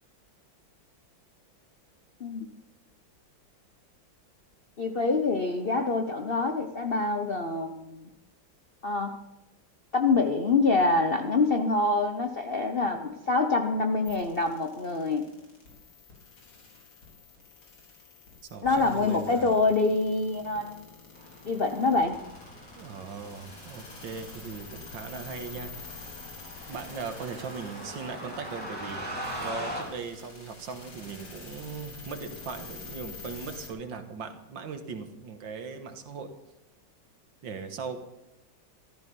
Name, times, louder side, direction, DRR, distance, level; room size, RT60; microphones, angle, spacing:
voice 1, 4.8-8.1 8.8-9.1 9.9-15.3 18.6-20.8 21.4-22.2, left 3 dB, 45° left, 4 dB, 0.7 m, -26 dB
sound 1, 14.0-33.7, left 4 dB, 85° left, 4.5 m, -47 dB
voice 2, 18.5-19.6 22.8-25.9 26.7-29.0 29.4-36.3 37.4-38.0, right 5 dB, 70° right, 7 dB, 2.0 m, -39 dB
sound 2, 21.1-29.8, right 1 dB, 5° left, 3.7 m, -41 dB
14.5 x 13.0 x 5.4 m, 0.95 s
omnidirectional pair, 2.2 m